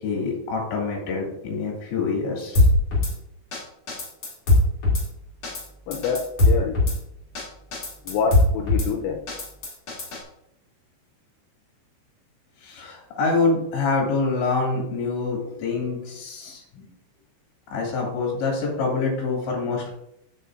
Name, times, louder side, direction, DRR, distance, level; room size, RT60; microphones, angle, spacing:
voice 1, 0.0-2.6 12.6-16.8 17.7-19.9, left 4 dB, 65° left, -2 dB, 4.7 m, -26 dB
Drum kit / Snare drum, 2.5-3.1 3.5-3.6 3.9-5.0 5.4-5.6 5.9-7.0 7.3-7.4 7.7-8.9 9.3-10.2, left 2 dB, 40° left, 2.6 m, -20 dB
voice 2, 5.9-6.8 8.1-9.2, left 6 dB, 85° left, 1 dB, 3.2 m, -26 dB
13.0 x 5.7 x 2.6 m, 0.80 s
omnidirectional pair, 5.9 m